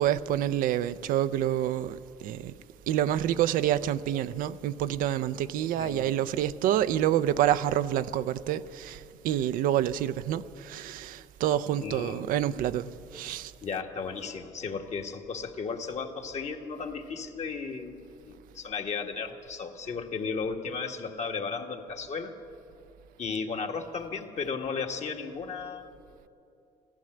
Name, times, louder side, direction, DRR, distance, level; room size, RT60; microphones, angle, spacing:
voice 1, 0.0-2.5 2.9-13.5, right 11 dB, 70° right, 0.5 m, -28 dB
voice 2, 5.8-6.1 11.8-12.2 13.6-18.0 18.3-22.3 23.2-25.9, left 5 dB, 50° left, 1.6 m, -35 dB
15.5 x 11.5 x 7.8 m
supercardioid pair, 60°, 15 cm